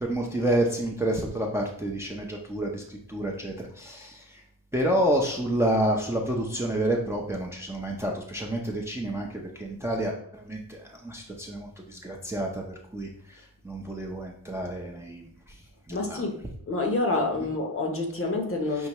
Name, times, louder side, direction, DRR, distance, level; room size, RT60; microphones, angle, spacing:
voice 1, 0.0-4.2 4.7-12.6 12.9-15.3 15.9-16.2 18.8-18.9, right 1 dB, 5° right, 0.5 m, -29 dB
voice 2, 15.9-16.3 16.7-18.9, left 2 dB, 35° left, 0.8 m, -27 dB
5.5 x 2.7 x 3.0 m
wide cardioid pair, 110°, 37 cm